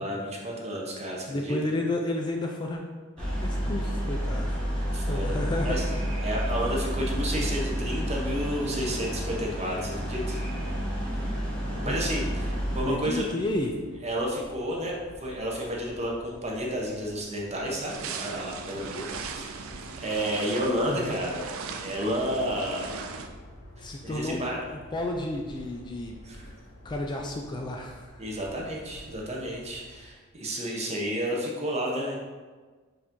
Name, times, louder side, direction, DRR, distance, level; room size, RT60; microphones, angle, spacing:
voice 1, 0.0-1.6 3.2-3.3 4.9-5.8 6.2-10.4 11.8-13.3 14.0-19.1 19.4-19.7 20.0-21.4 21.7-22.9 24.0-24.6 26.2-26.5 28.2-32.2, equal, 30° right, -2 dB, 0.8 m, -31 dB
voice 2, 1.3-2.8 3.4-4.6 5.1-5.8 11.8-11.9 12.8-13.7 20.9-21.2 23.8-24.4 24.7-26.2 26.8-28.4, left 1 dB, 20° left, 1 dB, 0.3 m, -31 dB
sound 1, 3.2-12.8, equal, 5° left, 1.0 m, -30 dB
sound 2, 10.3-30.1, equal, 85° left, 0.8 m, -49 dB
sound 3, 17.9-23.3, right 5 dB, 85° right, 0.4 m, -38 dB
4.8 x 2.6 x 3.7 m, 1.4 s
head